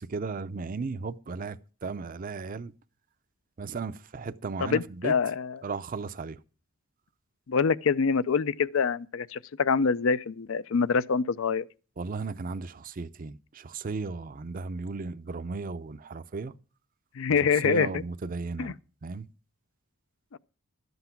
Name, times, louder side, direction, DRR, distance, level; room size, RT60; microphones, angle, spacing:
voice 1, 0.0-2.7 3.6-5.1 5.6-6.4 12.0-16.5 17.6-18.7 19.0-19.3, right 4 dB, 40° right, 0.5 m, -35 dB
voice 2, 4.6-5.6 7.5-11.7 17.2-18.0 18.6-18.7 20.3-20.4, left 5 dB, 70° left, 0.5 m, -25 dB
12.5 x 8.0 x 5.8 m
head